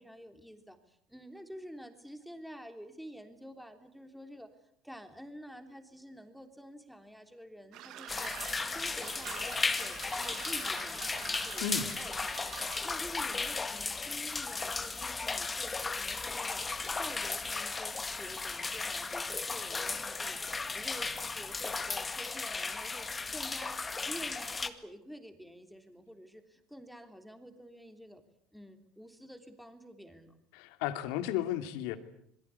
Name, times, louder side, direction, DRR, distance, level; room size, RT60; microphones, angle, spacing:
voice 1, 0.0-12.1 12.4-20.4 20.7-28.2 28.5-30.3, equal, ahead, 6 dB, 3.3 m, -49 dB
sound 1, 7.7-12.9, right 12 dB, 60° right, 2.0 m, -46 dB
sound 2, 8.1-24.7, left 4 dB, 15° left, 1.9 m, -35 dB
voice 2, 30.5-32.0, left 10 dB, 90° left, 9 dB, 2.7 m, -34 dB
27.0 x 22.0 x 8.4 m, 0.69 s
cardioid pair, 130°, 0 cm